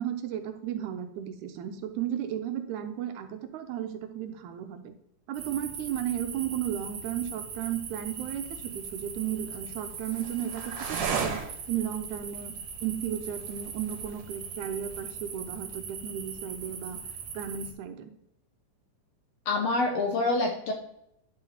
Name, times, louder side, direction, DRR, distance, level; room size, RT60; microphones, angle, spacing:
voice 1, 0.0-4.9 5.3-12.6 12.8-17.0 17.3-18.1, right 10 dB, 80° right, 7 dB, 1.9 m, -34 dB
sound 1, 5.3-17.7, right 6 dB, 65° right, 2.2 m, -38 dB
voice 2, 19.4-20.7, left 2 dB, 70° left, 2 dB, 1.6 m, -26 dB
9.7 x 5.7 x 2.8 m, 0.79 s
omnidirectional pair, 3.6 m